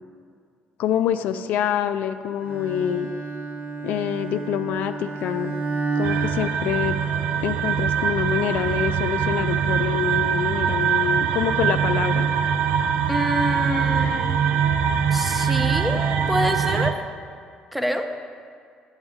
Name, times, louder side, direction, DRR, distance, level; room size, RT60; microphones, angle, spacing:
voice 1, 0.8-3.1 3.8-5.6 6.0-6.9 7.4-12.3, left 10 dB, 75° left, 10 dB, 0.3 m, -26 dB
Bowed string instrument, 2.4-7.4, right 3 dB, 55° right, 0.8 m, -31 dB
sound 1, 6.0-16.9, right 7 dB, 85° right, 0.4 m, -23 dB
voice 2, 13.1-14.4 15.1-17.0 17.7-18.1, equal, ahead, 6 dB, 0.5 m, -26 dB
7.9 x 7.2 x 3.6 m, 2.2 s
cardioid pair, 105°, 3 cm